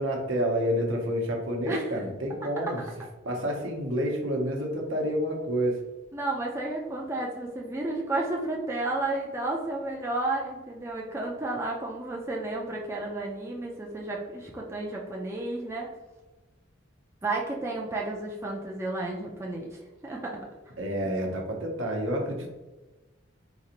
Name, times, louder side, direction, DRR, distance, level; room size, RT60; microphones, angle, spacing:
voice 1, 0.0-2.8 3.2-5.8 20.8-22.6, equal, 75° right, 1 dB, 0.8 m, -29 dB
voice 2, 6.1-15.9 17.2-19.8 20.0-20.4, right 2 dB, 15° right, -2 dB, 0.4 m, -32 dB
3.9 x 2.5 x 2.9 m, 1.1 s
head